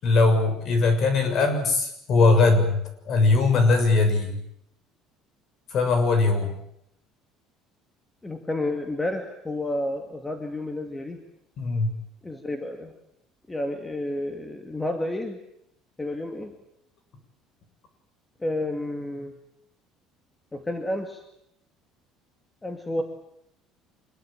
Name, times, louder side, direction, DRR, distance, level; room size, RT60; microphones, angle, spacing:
voice 1, 0.0-2.8 3.1-4.4 5.7-6.6 11.6-11.9, left 3 dB, 40° left, 7 dB, 6.7 m, -20 dB
voice 2, 8.2-11.2 12.2-12.9 13.5-15.4 16.0-16.5 18.4-19.3 20.5-21.2 22.6-23.0, left 1 dB, 10° left, 5 dB, 2.2 m, -30 dB
25.5 x 22.0 x 9.0 m, 0.76 s
cardioid pair, 155°, 0 cm